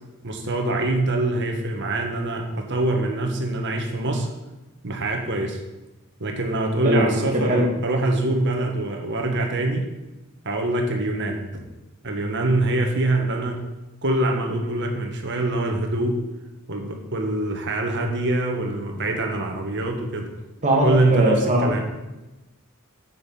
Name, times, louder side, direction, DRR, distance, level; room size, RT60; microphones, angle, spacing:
voice 1, 0.2-4.3 4.8-5.6 6.2-9.8 10.4-11.6 12.0-13.6 14.0-16.2 16.7-20.3 20.8-21.8, right 2 dB, 60° right, 3 dB, 1.7 m, -24 dB
voice 2, 7.3-7.7 20.6-21.8, right 1 dB, 35° right, -1 dB, 2.4 m, -20 dB
8.1 x 7.8 x 5.9 m, 1.0 s
head